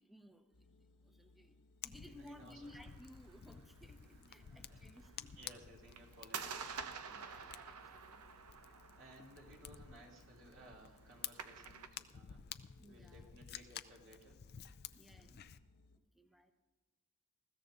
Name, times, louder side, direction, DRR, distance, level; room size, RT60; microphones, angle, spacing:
voice 1, 0.0-1.6 1.8-5.3 7.1-8.2 12.8-13.3 14.9-15.4 16.1-16.5, left 1 dB, ahead, 5 dB, 0.9 m, -59 dB
sound 1, 0.5-16.0, left 2 dB, 90° left, 1.0 m, -67 dB
Fire, 1.8-15.6, left 10 dB, 45° left, 0.4 m, -53 dB
voice 2, 2.0-2.7 4.1-4.9 5.4-6.8 9.0-12.4 12.8-14.4, right 1 dB, 60° right, -2 dB, 2.6 m, -59 dB
sound 2, 2.6-11.9, right 6 dB, 85° right, 0.8 m, -51 dB
20.5 x 15.0 x 2.6 m, 1.3 s
head